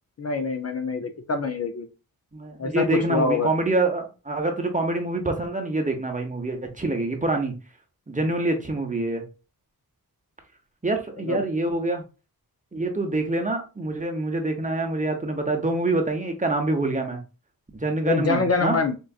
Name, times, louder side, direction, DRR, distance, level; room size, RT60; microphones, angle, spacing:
voice 1, 0.2-1.9 2.6-3.5 11.2-11.4 18.0-18.9, left 4 dB, 45° left, 0.5 m, -25 dB
voice 2, 2.3-7.5 8.1-9.2 10.8-12.0 12.7-17.2 17.7-18.8, right 2 dB, 20° right, 0.8 m, -26 dB
4.5 x 2.5 x 2.3 m
wide cardioid pair, 75°, 37 cm